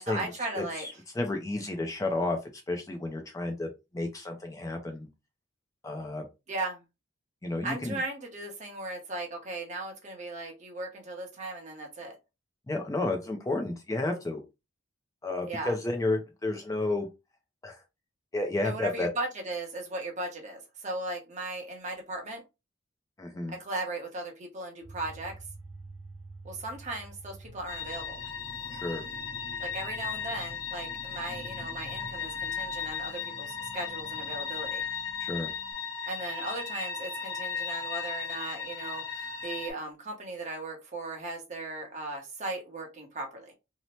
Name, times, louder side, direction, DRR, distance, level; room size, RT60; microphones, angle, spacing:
voice 1, 0.0-1.0 6.5-6.8 7.6-12.2 15.5-15.7 18.6-22.4 23.5-25.3 26.4-28.2 29.6-34.8 36.0-43.5, right 2 dB, 35° right, 0.8 m, -37 dB
voice 2, 0.6-2.4 2.7-5.1 5.8-6.3 7.4-8.0 12.7-14.4 15.2-17.1 17.6-17.8 18.3-19.1 23.2-23.5 28.7-29.0 35.2-35.5, left 2 dB, 15° left, 0.3 m, -31 dB
sound 1, 24.8-35.7, right 2 dB, 80° right, 0.8 m, -51 dB
sound 2, 27.7-39.7, left 6 dB, 75° left, 1.0 m, -36 dB
2.7 x 2.0 x 3.0 m
head